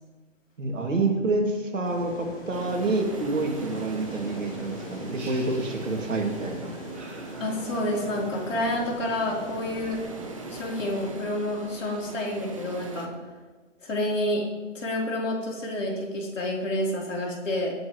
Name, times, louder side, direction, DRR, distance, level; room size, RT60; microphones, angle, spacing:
voice 1, 0.6-6.7, right 2 dB, 75° right, 2 dB, 2.5 m, -27 dB
sound 1, 1.8-11.1, left 2 dB, 25° left, 2.3 m, -42 dB
sound 2, 2.5-13.1, right 3 dB, 25° right, 0.7 m, -40 dB
sound 3, 5.2-6.5 6.9-8.2, right 3 dB, 55° right, 4.1 m, -49 dB
voice 2, 7.4-10.0 10.5-13.1 13.8-14.4 14.7-17.7, left 1 dB, 75° left, -3 dB, 3.8 m, -29 dB
18.0 x 7.7 x 3.2 m, 1.3 s
hypercardioid pair, 165°, 38 cm